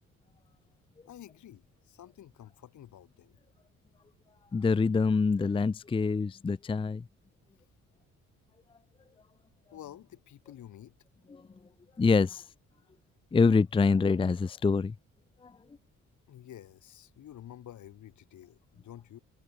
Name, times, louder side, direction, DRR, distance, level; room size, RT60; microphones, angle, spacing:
voice 1, 1.0-3.4 9.7-10.9 16.3-19.2, left 11 dB, 75° left, 6.5 m, -50 dB
voice 2, 4.5-7.0 11.3-11.4 12.0-12.5 13.3-14.9 15.4-15.5, left 4 dB, 15° left, 0.5 m, -25 dB
cardioid pair, 90°, 30 cm